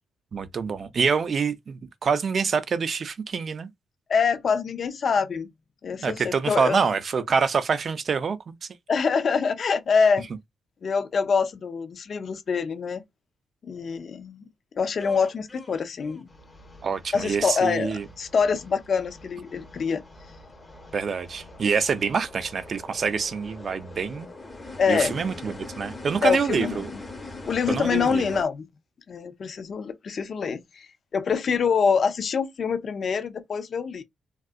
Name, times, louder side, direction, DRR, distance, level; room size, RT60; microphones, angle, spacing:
voice 1, 0.3-3.7 6.0-8.6 16.8-18.0 20.9-24.3 24.9-26.9 27.7-28.2, right 5 dB, 40° right, 0.4 m, -26 dB
voice 2, 4.1-5.5 5.8-6.8 8.9-10.3 10.8-13.0 13.6-14.4 14.7-16.3 17.1-20.0 24.8-25.2 26.2-27.0 27.5-28.7 29.1-34.0, left 5 dB, 45° left, 0.4 m, -25 dB
sound 1, 15.0-28.4, left 2 dB, 15° left, 0.7 m, -43 dB
3.6 x 2.3 x 2.4 m
wide cardioid pair, 160°, 0 cm